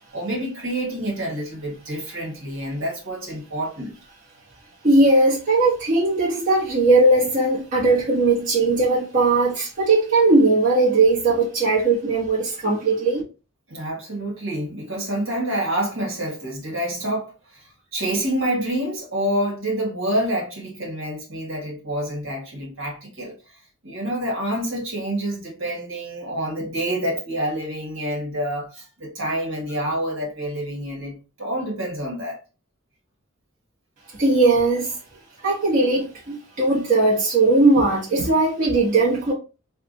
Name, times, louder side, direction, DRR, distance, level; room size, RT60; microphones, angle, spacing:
voice 1, 0.1-3.9 13.7-23.6 23.8-32.4, right 1 dB, 65° right, 1.7 m, -27 dB
voice 2, 4.8-13.2 34.2-34.9 35.4-39.3, right 2 dB, 35° right, 1.3 m, -18 dB
3.6 x 2.3 x 3.9 m
head